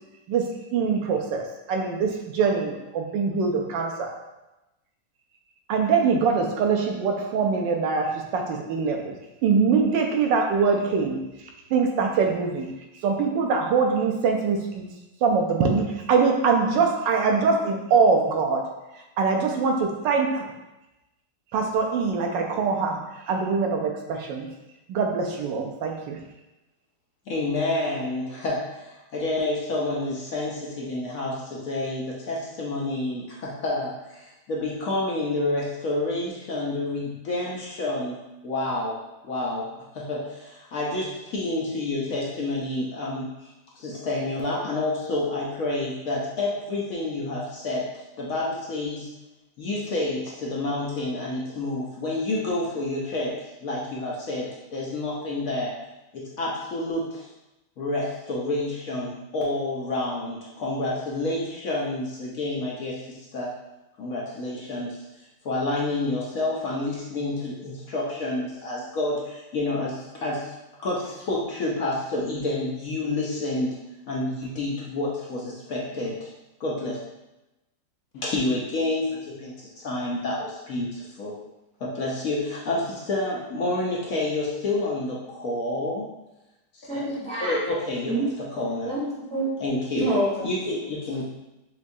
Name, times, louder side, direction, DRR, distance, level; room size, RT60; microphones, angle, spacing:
voice 1, 0.3-4.1 5.7-9.1 9.4-11.2 11.7-12.7 13.0-14.9 15.2-18.7 19.2-20.5 21.5-23.0 23.3-24.5 24.9-26.2, right 5 dB, 85° right, 2 dB, 1.3 m, -23 dB
voice 2, 27.3-39.7 39.9-43.5 43.8-47.9 48.2-49.1 49.6-53.4 53.6-55.7 56.1-57.3 57.8-63.5 64.0-65.0 65.4-70.5 70.8-73.8 74.1-76.3 76.6-77.0 78.1-81.3 81.8-86.0 86.7-87.0 87.4-88.2 88.5-88.9 89.6-90.1 90.4-91.2, left 2 dB, 60° left, -4 dB, 1.0 m, -29 dB
voice 3, 86.9-87.6 88.1-88.3 88.8-89.5 89.9-90.5, right 1 dB, 5° left, -8 dB, 0.6 m, -27 dB
6.1 x 2.3 x 2.7 m, 0.99 s
omnidirectional pair, 1.9 m